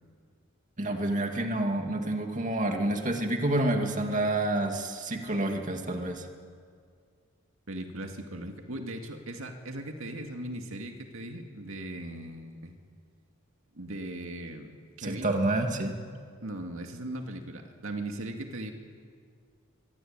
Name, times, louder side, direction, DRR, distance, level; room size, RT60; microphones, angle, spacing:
voice 1, 0.8-6.3 15.0-16.0, right 1 dB, 40° right, 3 dB, 2.3 m, -28 dB
voice 2, 7.7-12.7 13.7-15.3 16.4-18.7, right 1 dB, 70° right, 4 dB, 2.3 m, -38 dB
25.0 x 24.0 x 8.9 m, 2.1 s
head